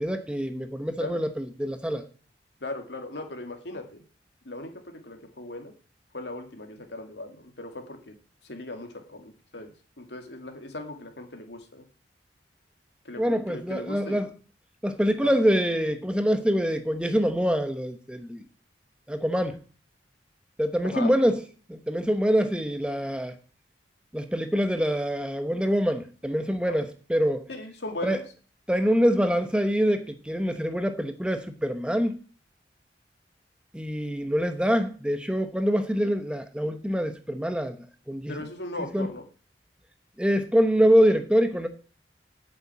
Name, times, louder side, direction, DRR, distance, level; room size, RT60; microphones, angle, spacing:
voice 1, 0.0-2.0 13.2-14.3 14.8-18.4 19.1-19.6 20.6-21.4 21.7-23.3 24.1-27.4 28.0-28.2 28.7-32.2 33.7-37.8 38.1-38.3 38.9-39.1 40.2-41.7, equal, 5° right, 0.9 m, -25 dB
voice 2, 2.6-4.0 4.4-5.7 6.1-8.2 8.4-11.8 13.0-14.2 15.2-15.3 20.8-21.1 26.7-26.8 27.5-28.2 38.3-39.2, left 2 dB, 75° left, 2.4 m, -38 dB
8.7 x 7.0 x 8.5 m
head